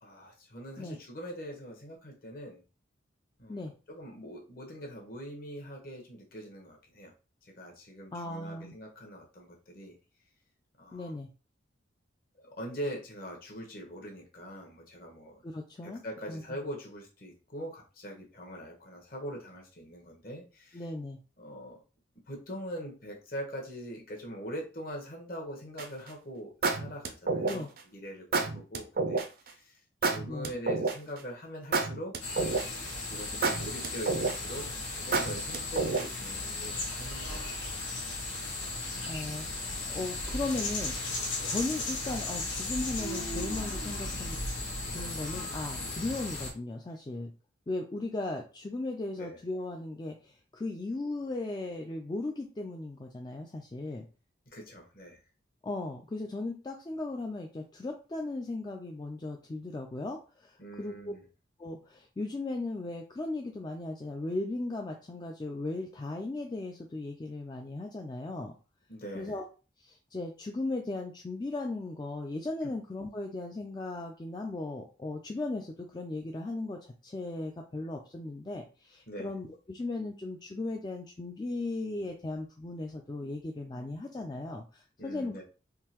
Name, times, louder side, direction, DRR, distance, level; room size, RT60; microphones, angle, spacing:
voice 1, 0.0-2.6 3.4-7.1 7.4-9.9 10.8-11.1 12.4-15.4 15.8-20.8 21.4-21.8 22.3-32.1 32.8-37.8 41.3-41.5 49.2-49.4 54.5-55.2 60.6-61.2 68.9-69.4 72.6-72.7 79.1-79.3 85.0-85.4, equal, 50° left, 0 dB, 1.1 m, -43 dB
voice 2, 8.1-8.7 10.9-11.3 15.4-16.0 16.3-16.4 20.7-21.2 27.4-27.7 30.3-30.5 39.0-40.9 41.4-44.4 44.9-47.3 47.7-54.1 55.6-61.1 61.6-68.5 69.1-69.4 69.8-85.3, left 2 dB, 20° left, 1 dB, 0.3 m, -37 dB
sound 1, 25.8-26.1 26.6-27.8 28.3-29.3 30.0-31.2 31.7-32.9 33.4-34.6 35.1-36.3, right 4 dB, 50° right, 0.5 m, -29 dB
sound 2, 32.2-46.5, left 2 dB, 90° left, 1.2 m, -36 dB
3.7 x 2.8 x 2.9 m, 0.34 s
head